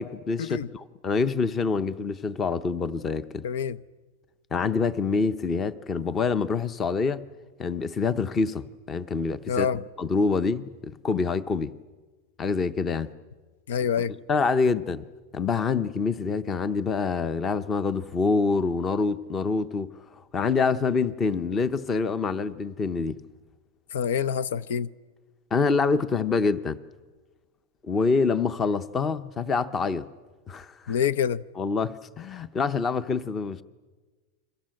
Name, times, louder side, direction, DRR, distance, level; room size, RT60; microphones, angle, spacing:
voice 1, 0.0-3.5 4.5-7.2 7.6-9.7 10.0-11.7 12.4-13.1 14.3-15.0 15.3-19.9 20.3-23.2 25.5-26.8 27.8-30.1 30.5-31.0 31.6-33.6, left 4 dB, 20° left, 0.8 m, -26 dB
voice 2, 3.4-3.8 9.5-9.8 13.7-14.2 23.9-24.9 30.9-31.4, left 8 dB, 80° left, 0.7 m, -26 dB
29.5 x 23.0 x 7.7 m
supercardioid pair, 165°, 0 cm